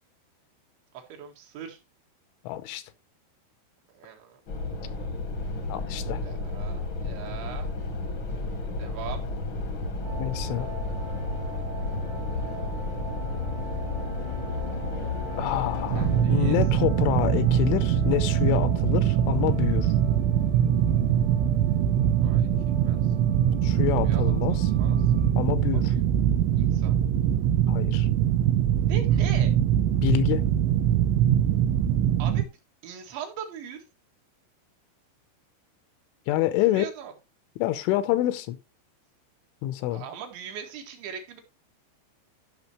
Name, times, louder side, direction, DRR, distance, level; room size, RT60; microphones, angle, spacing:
voice 1, 0.9-1.8 3.9-4.4 6.2-7.7 8.8-9.2 16.0-16.6 22.0-23.2 24.0-25.1 25.7-26.0 26.6-27.0 28.9-29.5 32.2-33.9 36.7-37.1 39.9-41.4, right 7 dB, 70° right, 3.9 m, -41 dB
voice 2, 2.5-2.8 5.7-6.2 10.2-10.7 15.4-19.9 23.6-24.7 25.4-25.9 27.7-28.1 30.0-30.5 36.3-36.9 37.6-38.6 39.6-40.0, left 14 dB, 85° left, 3.3 m, -27 dB
sound 1, 4.5-16.2, left 3 dB, 65° left, 1.2 m, -32 dB
sound 2, 10.0-25.3, right 1 dB, 30° right, 1.1 m, -37 dB
sound 3, 15.9-32.4, right 10 dB, 90° right, 3.2 m, -23 dB
14.5 x 6.0 x 3.2 m
omnidirectional pair, 5.5 m